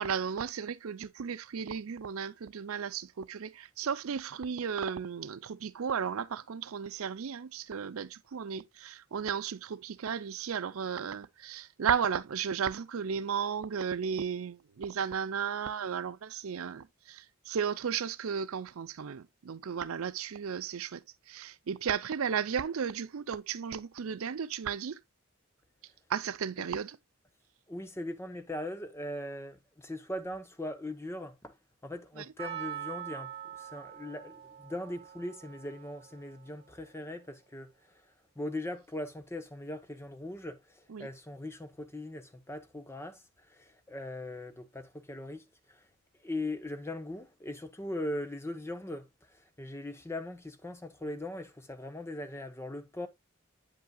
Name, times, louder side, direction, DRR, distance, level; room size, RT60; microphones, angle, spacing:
voice 1, 0.0-25.0 26.1-27.0 32.2-32.3 40.9-41.1, right 7 dB, 80° right, 0.5 m, -34 dB
voice 2, 27.7-31.6 31.8-38.1 38.4-45.9 46.2-53.1, left 1 dB, 10° left, 0.7 m, -40 dB
Percussion, 32.4-36.8 37.0-37.1, right 10 dB, 25° right, 2.3 m, -44 dB
8.8 x 5.5 x 2.3 m
head